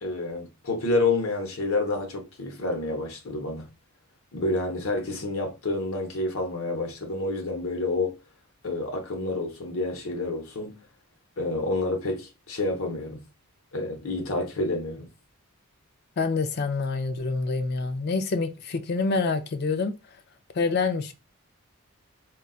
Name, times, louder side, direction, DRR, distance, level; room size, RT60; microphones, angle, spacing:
voice 1, 0.0-3.7 4.3-8.2 8.6-10.8 11.4-13.2 13.7-15.1, left 2 dB, 65° left, 0.8 m, -29 dB
voice 2, 16.2-19.9 20.5-21.1, left 4 dB, 45° left, 0.4 m, -26 dB
3.8 x 2.3 x 2.3 m
head